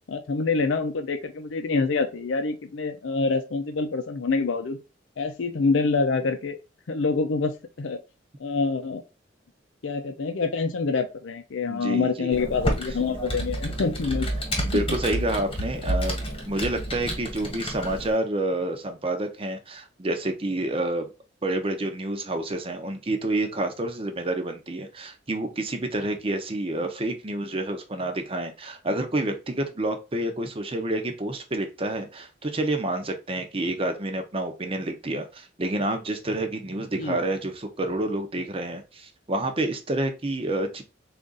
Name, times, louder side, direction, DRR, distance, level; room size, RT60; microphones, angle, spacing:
voice 1, 0.1-4.8 5.2-6.6 6.9-7.5 7.8-8.0 8.4-9.0 9.8-14.5 14.7-15.2 15.8-15.9 37.0-37.2, left 4 dB, 90° left, 7 dB, 0.5 m, -26 dB
voice 2, 11.7-12.4 13.3-13.4 14.6-21.1 21.4-40.8, right 1 dB, 30° right, 6 dB, 0.7 m, -28 dB
Computer keyboard, 12.3-18.1, equal, 30° left, 1.3 m, -30 dB
3.7 x 2.5 x 3.8 m, 0.29 s
head